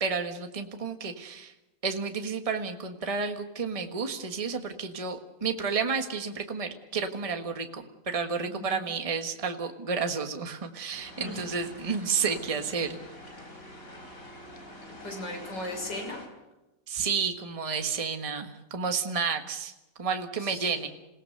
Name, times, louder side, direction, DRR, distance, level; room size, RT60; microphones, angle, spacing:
voice 1, 0.0-1.5 1.8-13.0 16.9-19.7 20.0-20.9, right 5 dB, 20° right, 6 dB, 1.5 m, -31 dB
voice 2, 8.5-8.9 11.2-11.5 15.0-16.2 20.4-20.9, left 1 dB, 85° left, 1 dB, 7.1 m, -38 dB
sound 1, 10.9-16.3, left 1 dB, 50° left, 4.4 m, -46 dB
27.5 x 17.5 x 6.7 m, 1.0 s
omnidirectional pair, 1.9 m